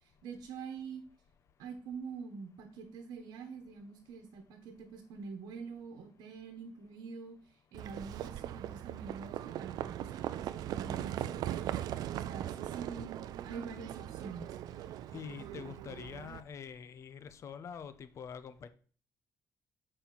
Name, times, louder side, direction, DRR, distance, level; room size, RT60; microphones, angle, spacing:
voice 1, 0.2-1.0 1.6-7.4 7.7-11.5 12.2-14.6, right 5 dB, 85° right, 3 dB, 1.1 m, -45 dB
Livestock farm animals working animals, 7.7-16.4, right 12 dB, 70° right, 0.4 m, -39 dB
voice 2, 15.1-18.7, left 7 dB, 45° left, 12 dB, 0.7 m, -45 dB
7.0 x 4.4 x 5.8 m, 0.43 s
cardioid pair, 140°, 7 cm